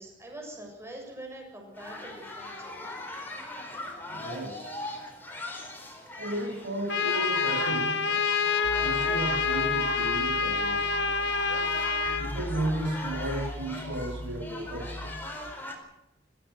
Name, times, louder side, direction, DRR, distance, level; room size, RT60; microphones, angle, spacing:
voice 1, 0.0-3.0 11.5-11.6, right 1 dB, 15° right, 0 dB, 7.2 m, -44 dB
sound 1, 1.7-15.7, left 1 dB, 10° left, 4.5 m, -41 dB
voice 2, 4.1-4.9 6.2-8.2 8.8-10.9 12.2-15.1, right 1 dB, 80° right, 3 dB, 7.3 m, -34 dB
Trumpet, 6.9-12.3, left 5 dB, 80° left, 2.4 m, -27 dB
sound 2, 8.6-15.5, left 1 dB, 25° left, 1.1 m, -40 dB
25.0 x 15.5 x 8.0 m, 0.90 s
head